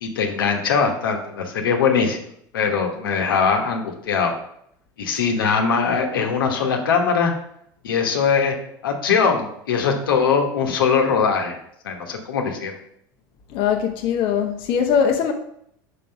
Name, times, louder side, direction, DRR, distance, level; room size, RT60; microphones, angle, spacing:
voice 1, 0.0-2.2 2.5-4.3 5.0-7.3 7.8-8.6 8.8-11.6 11.8-12.8, left 6 dB, 85° left, 3 dB, 1.2 m, -21 dB
voice 2, 13.5-15.3, left 7 dB, 55° left, 3 dB, 0.9 m, -21 dB
6.0 x 3.9 x 5.8 m, 0.72 s
hypercardioid pair, 90°, 11 cm